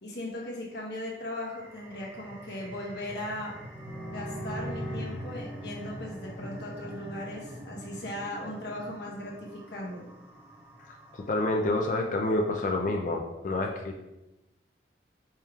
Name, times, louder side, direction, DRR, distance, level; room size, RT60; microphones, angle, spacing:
voice 1, 0.0-3.5 4.1-10.0, left 1 dB, 70° left, -3 dB, 0.9 m, -38 dB
sound 1, 1.3-12.5, equal, 15° right, 0.7 m, -46 dB
sound 2, 3.7-7.4, equal, 20° left, 1.0 m, -40 dB
voice 2, 10.8-14.0, left 2 dB, 45° left, 2 dB, 0.3 m, -29 dB
4.4 x 3.4 x 2.3 m, 0.97 s
head